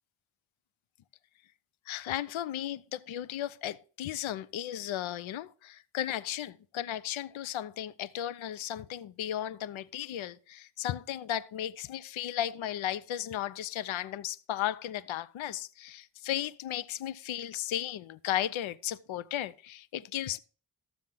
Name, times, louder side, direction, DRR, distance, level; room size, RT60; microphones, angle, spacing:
voice 1, 1.9-20.4, left 12 dB, 75° left, 0.6 m, -35 dB
13.0 x 7.1 x 3.8 m
cardioid pair, 50°, 48 cm